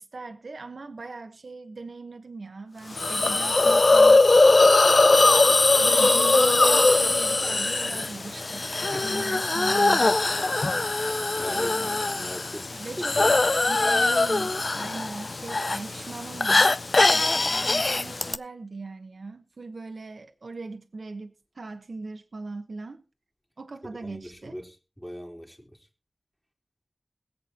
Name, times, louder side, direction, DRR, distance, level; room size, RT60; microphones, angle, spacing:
voice 1, 0.0-4.6 5.1-10.2 11.5-12.1 12.7-13.4 13.7-23.0 23.6-24.6, right 3 dB, 80° right, 1.0 m, -40 dB
Hiss, 3.0-18.3, left 3 dB, 55° left, 0.5 m, -21 dB
voice 2, 8.8-9.3 10.9-13.4 23.8-25.9, equal, 10° left, 3.7 m, -41 dB
21.5 x 7.9 x 2.9 m
wide cardioid pair, 65°, 0 cm